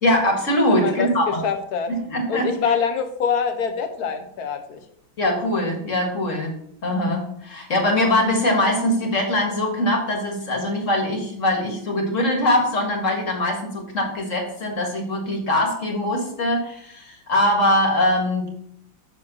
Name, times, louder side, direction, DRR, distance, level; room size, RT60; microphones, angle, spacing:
voice 1, 0.0-1.3 1.9-2.5 5.2-6.5 6.8-18.5, left 1 dB, 40° left, 2 dB, 2.1 m, -22 dB
voice 2, 0.7-1.9 2.3-4.8, left 6 dB, 55° left, 8 dB, 1.3 m, -25 dB
6.9 x 5.4 x 6.0 m, 0.70 s
omnidirectional pair, 2.2 m